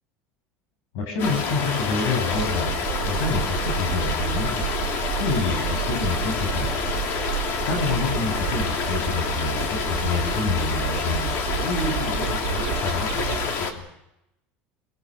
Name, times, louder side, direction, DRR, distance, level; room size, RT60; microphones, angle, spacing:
voice 1, 0.9-4.6 5.2-7.0 7.6-13.8, left 4 dB, 75° left, 4 dB, 7.9 m, -28 dB
sound 1, 1.2-13.7, left 5 dB, 55° left, 3.1 m, -28 dB
sound 2, 2.3-13.5, right 15 dB, 75° right, 1.1 m, -31 dB
24.0 x 22.0 x 6.5 m, 0.86 s
supercardioid pair, 135°, 5 cm